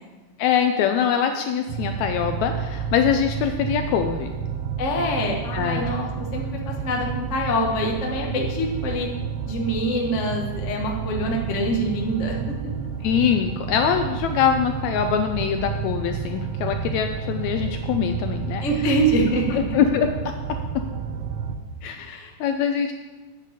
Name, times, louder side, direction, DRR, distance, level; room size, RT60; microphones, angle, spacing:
voice 1, 0.4-4.3 5.5-5.9 13.0-18.9 19.5-20.3 21.8-22.9, left 8 dB, 80° left, 6 dB, 1.7 m, -23 dB
sound 1, 1.7-21.6, right 6 dB, 85° right, 1.3 m, -30 dB
voice 2, 4.8-9.1 9.4-12.4 18.6-19.6 22.0-22.3, equal, 60° left, 0 dB, 0.7 m, -25 dB
9.0 x 8.1 x 4.9 m, 1.2 s
omnidirectional pair, 3.7 m